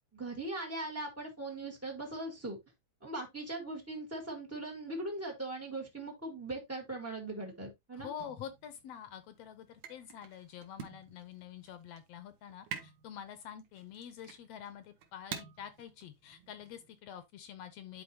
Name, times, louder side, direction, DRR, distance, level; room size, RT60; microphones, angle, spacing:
voice 1, 0.1-2.6 3.0-8.1, right 2 dB, 25° right, 0.3 m, -40 dB
voice 2, 7.9-18.0, left 9 dB, 75° left, 1.6 m, -47 dB
sound 1, 8.2-17.0, right 8 dB, 70° right, 2.4 m, -49 dB
11.5 x 4.2 x 2.7 m
omnidirectional pair, 3.3 m